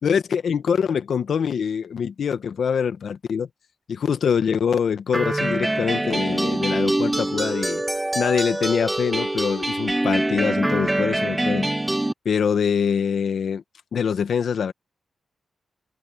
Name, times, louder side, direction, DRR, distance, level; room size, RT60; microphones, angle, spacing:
voice 1, 0.0-3.5 3.9-7.8 8.1-11.7 12.2-13.6 13.9-14.7, left 7 dB, 75° left, 1.5 m, -24 dB
sound 1, 5.1-12.1, right 1 dB, 15° right, 0.5 m, -24 dB
wide cardioid pair, 100°, 0 cm